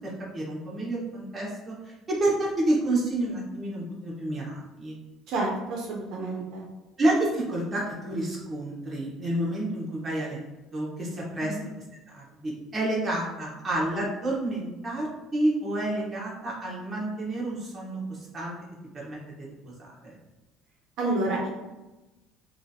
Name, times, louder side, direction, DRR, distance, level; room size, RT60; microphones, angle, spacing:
voice 1, 0.0-5.0 7.0-10.4 10.7-11.6 12.1-18.5 18.9-20.1, right 1 dB, 20° right, -5 dB, 0.9 m, -29 dB
voice 2, 5.3-6.6 11.4-11.7 21.0-21.5, right 2 dB, 60° right, -1 dB, 0.5 m, -29 dB
2.9 x 2.3 x 2.6 m, 1.1 s
cardioid pair, 150°, 0 cm